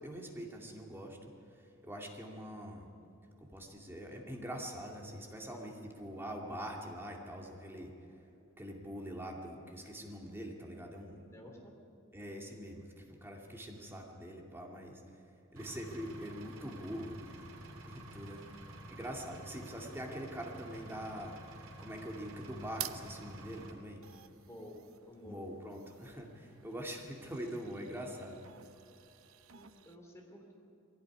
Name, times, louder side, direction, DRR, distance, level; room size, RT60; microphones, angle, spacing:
voice 1, 0.0-2.9 3.4-7.9 8.6-11.2 12.1-15.0 15.5-17.5 17.8-18.5 18.9-24.0 25.2-28.4, equal, 10° right, 0 dB, 2.4 m, -44 dB
voice 2, 11.2-11.7 24.4-24.8 25.1-25.5 29.5-30.5, left 1 dB, 15° left, 0 dB, 3.3 m, -52 dB
Engine, 15.6-23.7, right 1 dB, 90° right, 3.1 m, -50 dB
sound 1, 22.1-30.0, right 12 dB, 70° right, 0.8 m, -51 dB
21.5 x 16.5 x 9.8 m, 2.7 s
head